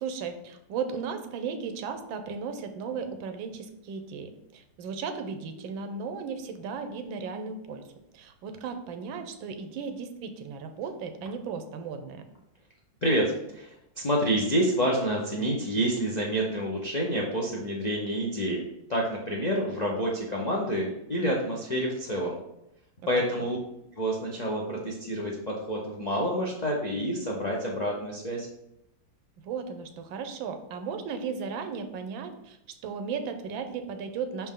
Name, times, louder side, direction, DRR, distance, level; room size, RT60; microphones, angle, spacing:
voice 1, 0.0-7.8 8.1-12.2 23.2-23.5 29.4-34.5, right 5 dB, 85° right, 8 dB, 1.5 m, -35 dB
voice 2, 13.0-18.6 18.9-22.4 23.1-23.6 23.9-28.5, equal, 60° left, -2 dB, 0.4 m, -28 dB
5.8 x 4.4 x 3.7 m, 0.83 s
omnidirectional pair, 2.1 m